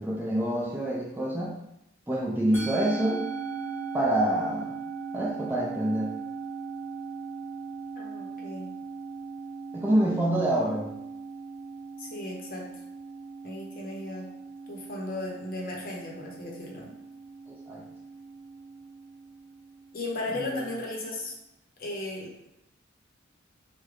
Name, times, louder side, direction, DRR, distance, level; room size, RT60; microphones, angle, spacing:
voice 1, 0.0-1.6 2.1-3.2 3.9-4.7 5.1-6.1 9.7-10.9 17.5-17.8 20.3-20.7, right 1 dB, 10° right, -4 dB, 0.4 m, -27 dB
Musical instrument, 2.5-21.0, right 5 dB, 10° left, 1.0 m, -39 dB
voice 2, 7.9-8.7 12.0-12.7 13.4-14.3 14.7-17.0 19.9-21.3 21.8-22.5, left 2 dB, 45° left, -2 dB, 0.7 m, -36 dB
3.2 x 2.1 x 3.6 m, 0.82 s
head